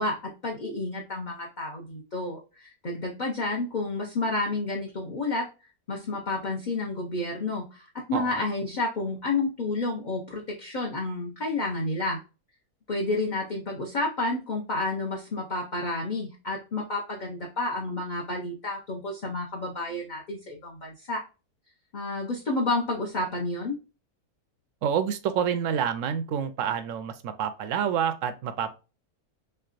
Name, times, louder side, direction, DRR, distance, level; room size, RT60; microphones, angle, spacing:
voice 1, 0.0-5.5 5.9-12.2 12.9-21.2 21.9-23.8, left 2 dB, 35° left, -2 dB, 0.8 m, -30 dB
voice 2, 8.1-8.4 24.8-28.7, right 8 dB, 70° right, 10 dB, 0.8 m, -28 dB
3.4 x 3.3 x 2.4 m, 0.31 s
omnidirectional pair, 1.6 m